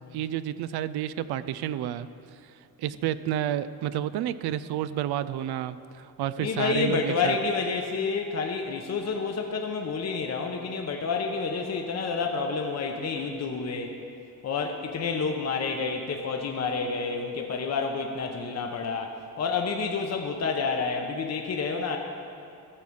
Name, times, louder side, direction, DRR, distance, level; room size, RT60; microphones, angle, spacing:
voice 1, 0.1-2.1 2.8-7.4, right 11 dB, 90° right, 14 dB, 0.5 m, -30 dB
voice 2, 6.4-13.9 14.4-22.0, left 5 dB, 45° left, 3 dB, 0.8 m, -29 dB
14.5 x 4.9 x 7.1 m, 2.5 s
cardioid pair, 120°, 37 cm